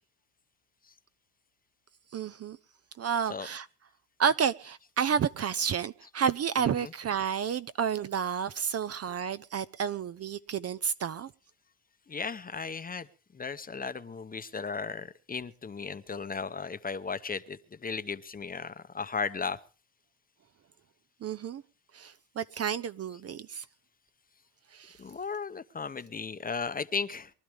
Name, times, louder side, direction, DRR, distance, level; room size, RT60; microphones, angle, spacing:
voice 1, 2.1-2.6 3.0-3.7 4.2-11.3 21.2-21.6 21.9-23.6 24.7-25.0, right 7 dB, 35° right, 0.6 m, -30 dB
voice 2, 6.6-6.9 12.1-13.1 13.3-19.6 23.1-23.2 25.0-27.3, left 5 dB, 20° left, 0.9 m, -36 dB
23.5 x 12.0 x 3.5 m
cardioid pair, 125°, 41 cm